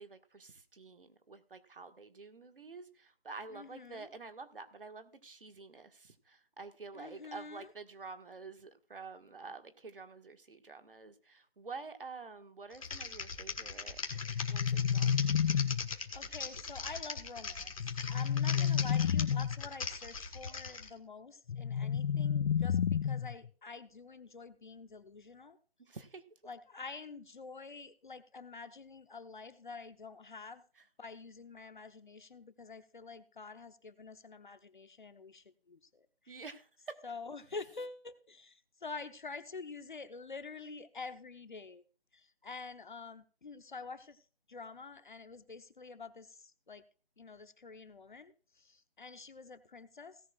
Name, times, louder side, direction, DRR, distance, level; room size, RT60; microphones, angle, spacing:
voice 1, 0.0-14.0 14.5-15.3 18.5-18.8 21.8-22.0 25.9-26.2 30.7-30.9 36.3-37.0 37.5-37.9, right 4 dB, 65° right, 8 dB, 1.6 m, -49 dB
voice 2, 3.5-4.1 6.9-7.7 16.1-17.7 18.1-25.6 26.4-30.6 31.0-36.4 37.0-41.8 42.1-44.2 44.5-46.8 47.2-50.2, left 4 dB, 55° left, 11 dB, 0.9 m, -48 dB
Typing, 12.7-20.9, left 4 dB, 35° left, 1.6 m, -41 dB
sound 1, 14.1-16.1 17.8-19.7 21.5-23.5, left 8 dB, 75° left, 0.5 m, -31 dB
17.5 x 10.5 x 2.4 m, 0.38 s
figure-of-eight pair, 165°, 30 cm